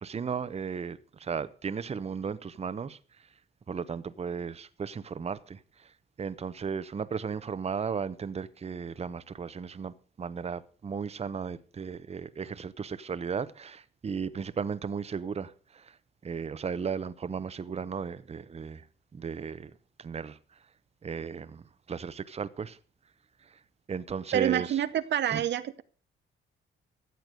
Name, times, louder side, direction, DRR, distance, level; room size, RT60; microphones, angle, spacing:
voice 1, 0.0-3.0 3.7-5.6 6.2-15.5 16.2-18.8 19.2-19.7 20.0-20.3 21.0-21.6 21.9-22.8 23.9-24.7 25.3-25.4, right 6 dB, 30° right, 0.9 m, -35 dB
voice 2, 24.3-25.8, right 10 dB, 60° right, 0.8 m, -27 dB
14.0 x 8.0 x 6.6 m
cardioid pair, 90°, 20 cm